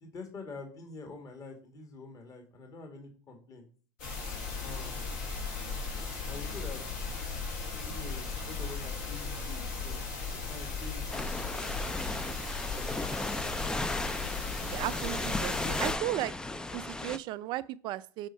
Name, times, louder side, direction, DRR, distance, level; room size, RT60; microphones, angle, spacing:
voice 1, 0.0-3.7 4.6-5.1 6.3-6.8 7.8-10.0 10.3-12.0 12.7-13.1 15.4-15.7, left 3 dB, 35° left, 1.9 m, -46 dB
sound 1, 4.0-15.9, left 4 dB, 70° left, 3.6 m, -37 dB
sound 2, 11.1-17.2, left 2 dB, 10° left, 0.4 m, -35 dB
voice 2, 14.6-16.3 16.7-18.3, right 15 dB, 50° right, 0.4 m, -35 dB
6.4 x 4.3 x 5.3 m
hypercardioid pair, 90°, 10 cm